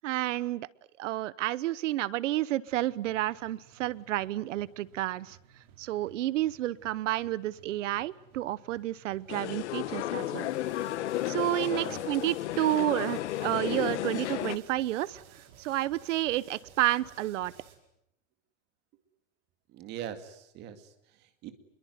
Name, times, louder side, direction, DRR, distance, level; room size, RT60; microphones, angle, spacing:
voice 1, 0.0-0.7 1.0-5.4 5.8-10.5 11.3-15.2 15.6-17.5, right 15 dB, 70° right, 21 dB, 1.0 m, -30 dB
sound 1, 2.7-17.8, right 8 dB, 50° right, 5.3 m, -57 dB
sound 2, 9.3-14.6, left 14 dB, 60° left, 1.4 m, -33 dB
voice 2, 11.7-12.1 12.9-13.2 19.7-21.5, right 10 dB, 25° right, 9 dB, 2.2 m, -43 dB
27.0 x 22.5 x 9.5 m, 0.76 s
supercardioid pair, 180°, 38 cm